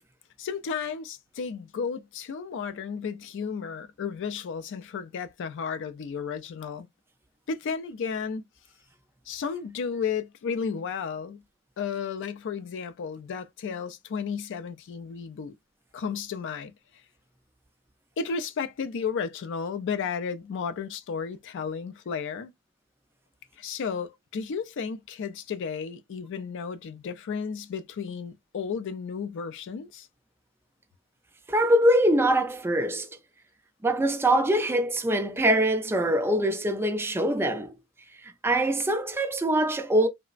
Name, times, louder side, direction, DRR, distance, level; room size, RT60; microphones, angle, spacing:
voice 1, 0.4-6.9 7.5-8.4 9.3-11.4 11.8-15.5 15.9-16.7 18.2-22.5 23.6-30.1, left 6 dB, 60° left, 0.4 m, -33 dB
voice 2, 31.5-33.1 33.8-37.7 38.2-40.1, right 1 dB, 10° right, 0.4 m, -23 dB
3.1 x 2.0 x 2.4 m
head